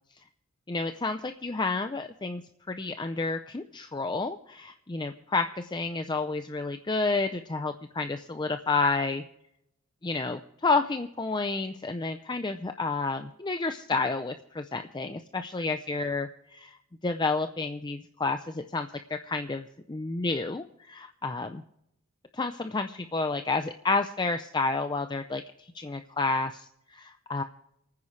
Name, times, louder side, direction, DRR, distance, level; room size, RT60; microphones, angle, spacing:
voice 1, 0.7-2.4 2.7-9.2 10.0-16.7 17.0-21.5 22.3-25.4 25.7-27.4, left 3 dB, 20° left, 8 dB, 0.5 m, -30 dB
28.0 x 9.6 x 3.2 m, 0.79 s
head